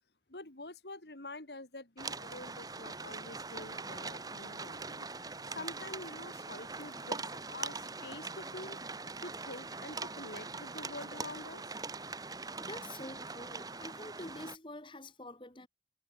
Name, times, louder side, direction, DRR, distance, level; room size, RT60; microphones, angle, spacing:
voice 1, 0.3-5.1 5.5-8.8 9.2-11.6, left 2 dB, 70° left, 3.3 m, -47 dB
sound 1, 2.0-14.6, right 3 dB, 20° right, 1.7 m, -42 dB
voice 2, 12.6-15.7, left 1 dB, 30° left, 2.6 m, -47 dB
head